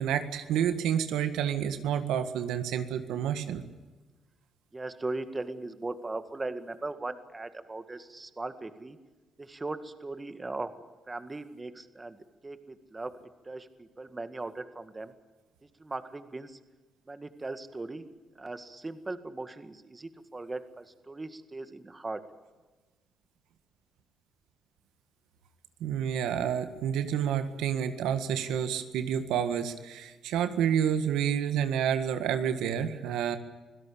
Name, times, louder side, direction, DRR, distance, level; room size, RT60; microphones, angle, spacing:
voice 1, 0.0-3.6 25.8-33.4, right 9 dB, 90° right, 9 dB, 1.8 m, -29 dB
voice 2, 4.7-9.0 9.4-10.7 11.1-12.2 12.4-13.1 13.5-15.1 15.8-16.6 17.1-18.1 18.4-22.2, right 2 dB, 20° right, 10 dB, 1.8 m, -38 dB
26.0 x 17.0 x 8.6 m, 1.2 s
cardioid pair, 90°, 0 cm